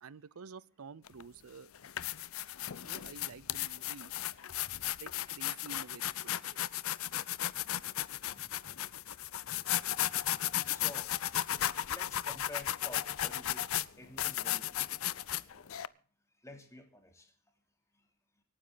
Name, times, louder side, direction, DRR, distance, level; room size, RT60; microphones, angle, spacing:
voice 1, 0.0-1.7 2.8-4.1 5.0-6.6, right 5 dB, 85° right, 0.6 m, -50 dB
sound 1, 1.1-1.2 1.7-15.9, left 13 dB, 75° left, 0.6 m, -35 dB
sound 2, 8.2-9.1 9.6-11.0 11.3-13.8, equal, 35° right, 5.0 m, -72 dB
sound 3, 8.3-15.9, left 2 dB, 40° left, 1.4 m, -65 dB
voice 2, 10.5-11.2 11.9-13.6 14.0-14.9 16.4-17.3, left 1 dB, 15° left, 3.0 m, -50 dB
25.0 x 9.8 x 4.0 m
head